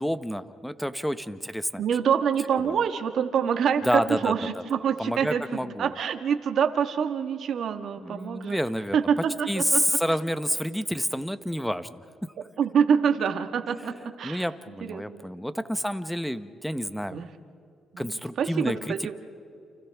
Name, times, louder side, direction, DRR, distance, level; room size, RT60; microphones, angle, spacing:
voice 1, 0.0-1.8 2.5-2.7 3.8-4.6 5.0-5.9 8.0-9.0 9.5-12.1 14.2-17.2 18.0-19.1, equal, ahead, 12 dB, 0.9 m, -29 dB
voice 2, 1.8-8.6 8.9-9.8 12.6-14.5 14.9-15.2 17.1-17.3 17.9-18.1 18.4-19.1, right 7 dB, 65° right, 7 dB, 1.5 m, -26 dB
29.5 x 28.5 x 3.5 m, 2.5 s
cardioid pair, 90°, 0 cm